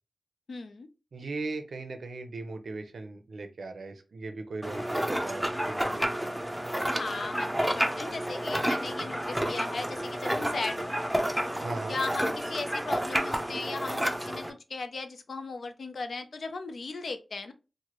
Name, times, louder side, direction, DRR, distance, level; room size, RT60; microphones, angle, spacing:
voice 1, 0.5-0.9 7.0-11.1 11.9-17.5, left 3 dB, 90° left, 8 dB, 0.4 m, -37 dB
voice 2, 1.1-6.5 11.6-12.0, right 3 dB, 90° right, 6 dB, 0.6 m, -38 dB
sound 1, 4.6-14.5, equal, 5° right, 0.4 m, -30 dB
3.1 x 2.1 x 2.9 m, 0.30 s
wide cardioid pair, 85°, 0 cm